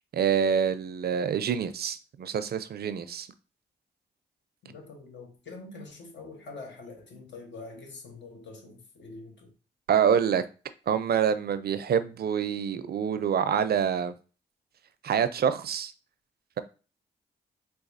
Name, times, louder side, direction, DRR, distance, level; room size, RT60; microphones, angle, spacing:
voice 1, 0.1-3.3 9.9-10.4 10.9-14.1 15.0-15.9, right 7 dB, 55° right, 0.4 m, -26 dB
voice 2, 4.6-9.5, left 3 dB, 70° left, 1.0 m, -45 dB
3.9 x 2.3 x 2.6 m
supercardioid pair, 45°, 19 cm